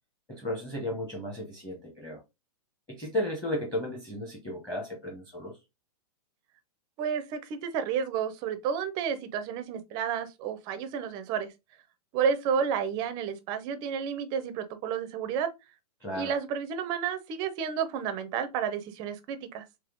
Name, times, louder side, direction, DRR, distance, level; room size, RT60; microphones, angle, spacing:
voice 1, 0.3-2.2 2.9-5.6 16.0-16.3, left 1 dB, 5° left, 0.8 m, -34 dB
voice 2, 7.0-11.5 12.1-15.5 16.1-19.6, right 7 dB, 20° right, 0.4 m, -31 dB
3.5 x 3.2 x 3.6 m
hypercardioid pair, 160°, 20 cm